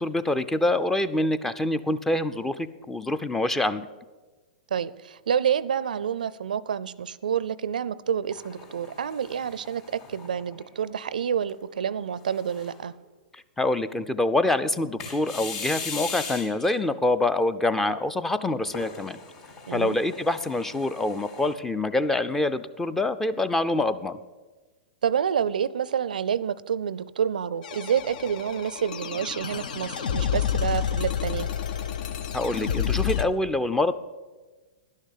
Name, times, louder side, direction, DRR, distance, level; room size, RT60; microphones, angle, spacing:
voice 1, 0.0-3.9 13.3-19.2 19.7-24.2 32.3-33.9, left 2 dB, 5° left, 13 dB, 0.4 m, -26 dB
voice 2, 4.7-12.9 19.7-20.0 25.0-31.5, right 8 dB, 85° right, 19 dB, 0.4 m, -28 dB
sound 1, 8.3-10.9 11.4-11.5 12.2-12.9 15.0-16.7 18.6-21.5, left 5 dB, 40° left, 3.4 m, -39 dB
sound 2, 27.6-33.2, left 8 dB, 70° left, 0.7 m, -29 dB
11.5 x 6.5 x 8.3 m, 1.3 s
hypercardioid pair, 130°, 4 cm